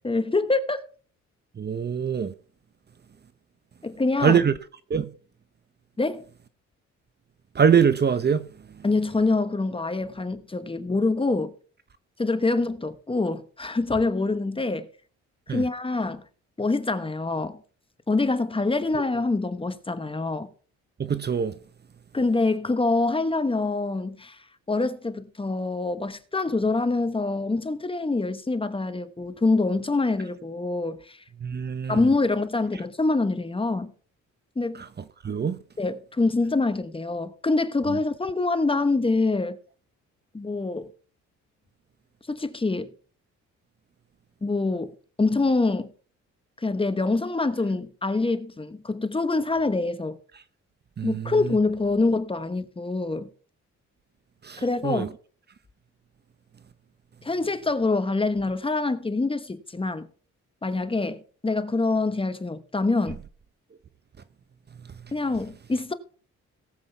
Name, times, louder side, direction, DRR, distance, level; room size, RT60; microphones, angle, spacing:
voice 1, 0.0-0.8 3.8-4.4 6.0-6.2 8.8-11.5 12.2-14.9 15.5-16.2 16.6-17.6 18.1-20.5 22.1-24.4 24.7-31.2 31.9-33.9 34.6-34.8 35.8-39.6 40.3-40.9 42.3-42.9 44.4-45.9 46.6-50.2 51.0-53.3 54.6-55.0 57.2-60.1 60.6-63.2 65.1-65.9, left 3 dB, 20° left, 1.1 m, -25 dB
voice 2, 1.6-2.3 4.2-4.5 4.9-5.1 7.5-8.5 15.5-15.6 21.0-21.5 31.4-32.0 35.2-35.6 51.0-51.6 54.4-55.1, right 7 dB, 35° right, 0.8 m, -23 dB
18.5 x 7.6 x 3.4 m
cardioid pair, 90°, 30 cm